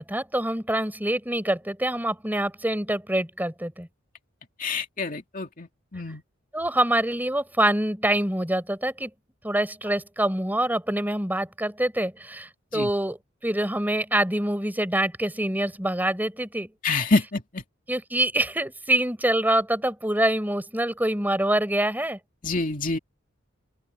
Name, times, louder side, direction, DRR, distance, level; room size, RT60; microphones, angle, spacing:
voice 1, 0.0-3.9 6.5-9.1 9.4-13.2 13.4-16.7 17.9-22.2, right 1 dB, 10° right, 4.4 m, -25 dB
voice 2, 4.6-6.2 12.7-12.9 16.8-17.6 22.4-23.0, left 3 dB, 40° left, 2.4 m, -27 dB
open air
head